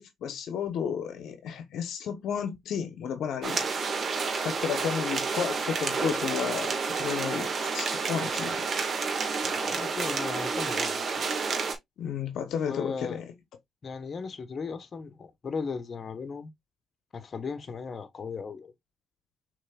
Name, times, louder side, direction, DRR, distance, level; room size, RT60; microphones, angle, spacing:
voice 1, 0.0-3.6 4.4-8.5 12.0-13.3, left 7 dB, 75° left, 0.8 m, -32 dB
sound 1, 3.4-11.8, right 4 dB, 50° right, 1.5 m, -30 dB
voice 2, 9.4-11.0 12.7-13.2 13.8-16.5 17.1-18.7, left 5 dB, 45° left, 1.0 m, -36 dB
6.4 x 3.6 x 2.3 m
supercardioid pair, 65°, 0 cm